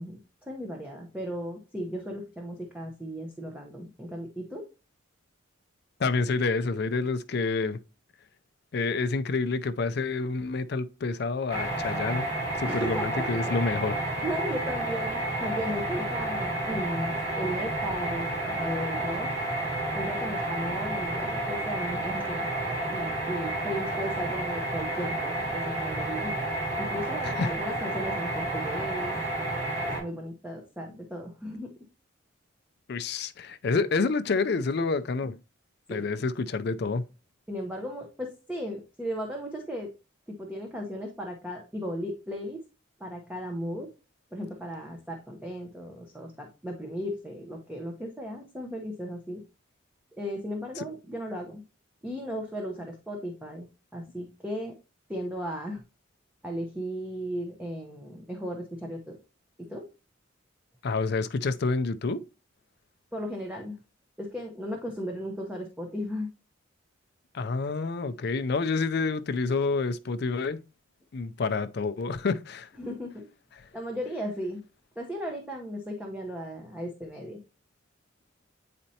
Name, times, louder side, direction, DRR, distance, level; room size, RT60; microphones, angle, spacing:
voice 1, 0.0-4.7 12.6-13.7 14.2-19.5 19.9-22.5 22.9-26.3 26.8-29.2 29.8-31.9 35.9-36.1 37.5-39.9 40.3-42.6 43.0-43.9 44.3-49.4 50.2-51.6 52.0-53.7 53.9-54.8 55.1-55.8 56.4-59.2 59.6-59.9 63.1-63.8 64.2-66.3 72.8-73.3 73.7-74.6 75.0-77.4, equal, 5° right, 0.8 m, -36 dB
voice 2, 6.0-7.8 8.7-12.3 12.6-14.0 27.2-27.5 32.9-35.4 35.9-37.0 50.8-50.9 60.8-62.2 67.3-70.6 71.1-72.7, left 4 dB, 50° left, 0.4 m, -28 dB
sound 1, 11.5-30.0, right 1 dB, 35° right, 3.6 m, -31 dB
8.8 x 4.2 x 2.8 m
head